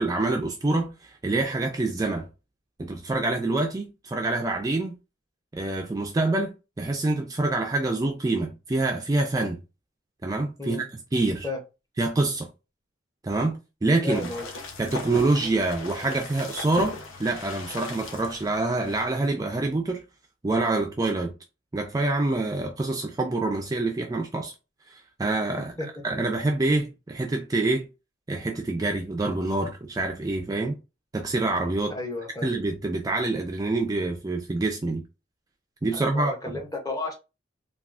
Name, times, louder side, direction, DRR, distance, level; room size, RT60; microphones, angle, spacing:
voice 1, 0.0-2.3 2.8-4.9 5.5-6.5 6.8-9.6 10.2-11.5 12.0-12.5 13.2-14.3 14.8-20.0 20.4-21.3 21.7-24.5 24.9-25.7 26.0-27.9 28.3-30.8 31.1-31.9 32.4-35.0 35.8-36.3, right 2 dB, 20° right, 0.3 m, -26 dB
voice 2, 14.0-14.5 25.8-25.9 31.9-32.5 35.9-37.1, left 2 dB, 20° left, 0.7 m, -33 dB
sound 1, 14.1-19.1, left 3 dB, 90° left, 0.7 m, -39 dB
3.4 x 2.3 x 2.4 m
head